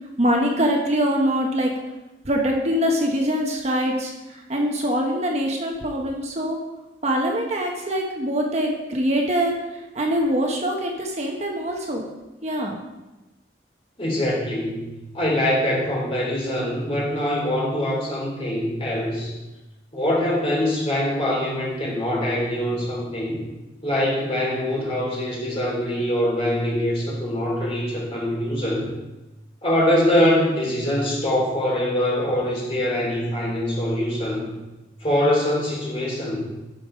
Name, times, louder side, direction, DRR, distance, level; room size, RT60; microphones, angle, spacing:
voice 1, 0.2-1.7 2.2-6.6 7.0-12.0 12.4-12.8, equal, 35° right, 1 dB, 1.0 m, -23 dB
voice 2, 14.0-19.3 19.9-23.4 23.8-28.9 29.6-34.5 35.0-36.5, left 1 dB, 30° left, -5 dB, 3.5 m, -23 dB
11.5 x 5.4 x 5.1 m, 1.1 s
head